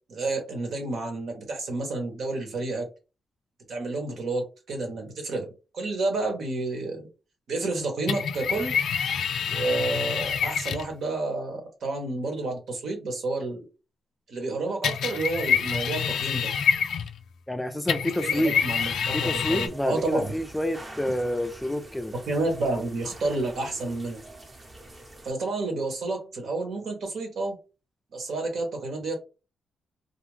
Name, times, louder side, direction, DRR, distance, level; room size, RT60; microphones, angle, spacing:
voice 1, 0.1-2.9 3.7-5.5 5.7-7.1 7.5-8.8 9.4-13.6 14.3-16.5 18.2-20.3 22.3-24.2 25.2-27.6 28.1-29.2, right 2 dB, 70° right, 1.0 m, -30 dB
sound 1, 8.1-10.9 14.8-17.3 17.9-19.7, left 7 dB, 80° left, 0.3 m, -27 dB
voice 2, 17.5-18.6 19.1-22.1, left 1 dB, 10° left, 0.4 m, -28 dB
sound 2, 18.7-25.3, right 1 dB, 25° right, 0.8 m, -46 dB
2.4 x 2.2 x 3.2 m
cardioid pair, 70°, 0 cm